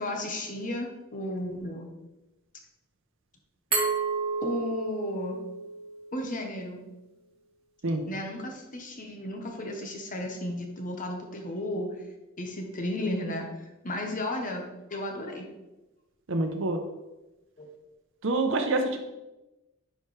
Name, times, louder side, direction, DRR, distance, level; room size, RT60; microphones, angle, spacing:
voice 1, 0.0-1.9 3.8-3.9 4.4-5.4 6.1-6.8 8.1-12.0 12.4-15.5 17.6-17.7, left 1 dB, 40° left, 2 dB, 1.0 m, -34 dB
Glass, 3.7-6.5, right 4 dB, 30° right, 1.8 m, -31 dB
voice 2, 16.3-16.8 18.2-19.0, right 2 dB, 65° right, 5 dB, 0.8 m, -26 dB
10.0 x 4.6 x 3.3 m, 1.0 s
head